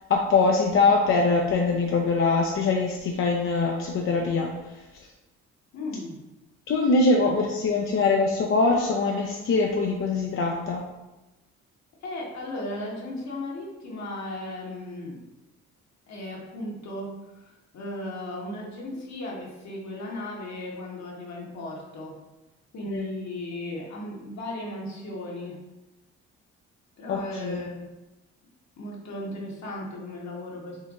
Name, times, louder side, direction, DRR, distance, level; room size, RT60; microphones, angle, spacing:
voice 1, 0.1-4.5 6.7-10.8 22.9-23.0 27.1-27.6, left 3 dB, 45° left, 0 dB, 0.5 m, -23 dB
voice 2, 5.7-6.2 7.1-7.3 12.0-15.2 16.1-22.2 22.7-25.6 27.0-27.9 28.8-30.9, left 1 dB, 60° left, -3 dB, 1.2 m, -36 dB
4.4 x 2.9 x 2.4 m, 1.0 s
supercardioid pair, 70°, 31 cm